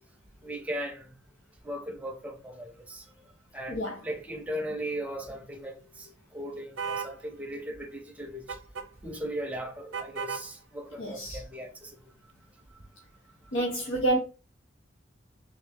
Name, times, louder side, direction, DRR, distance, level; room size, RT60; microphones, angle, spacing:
voice 1, 0.4-1.1 1.6-3.0 3.5-8.4 9.0-11.9, equal, 5° right, 0.6 m, -37 dB
sound 1, 6.8-7.2 8.5-8.9 9.9-10.5, right 6 dB, 90° right, 0.7 m, -34 dB
voice 2, 11.0-11.4 13.5-14.2, right 2 dB, 75° left, 0.8 m, -28 dB
3.3 x 3.1 x 3.5 m
head